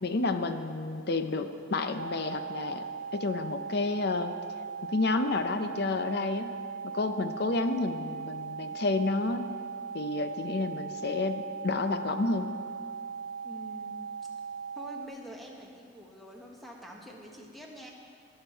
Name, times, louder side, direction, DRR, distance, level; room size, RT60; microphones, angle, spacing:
voice 1, 0.0-2.9 3.1-4.3 4.8-6.5 6.8-9.5 9.9-12.5, left 3 dB, 55° left, 9 dB, 0.6 m, -30 dB
sound 1, 2.0-15.1, right 6 dB, 65° right, 0.5 m, -39 dB
voice 2, 13.4-14.0 14.8-17.9, equal, ahead, -1 dB, 1.2 m, -46 dB
19.5 x 6.7 x 4.5 m, 2.3 s
head